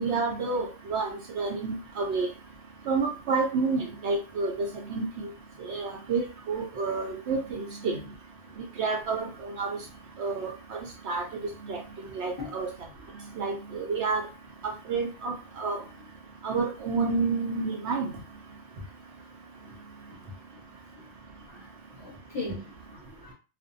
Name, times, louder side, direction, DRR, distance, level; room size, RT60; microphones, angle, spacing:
voice 1, 0.0-2.3 2.9-4.5 4.9-5.0 5.6-8.0 8.8-9.7 10.2-10.8 11.1-11.2 11.7-12.7 13.4-14.2 14.9-15.8 16.4-18.1, right 4 dB, 70° right, 0.8 m, -29 dB
voice 2, 21.5-23.3, left 3 dB, 25° left, 0.9 m, -40 dB
2.4 x 2.1 x 2.6 m
omnidirectional pair, 1.3 m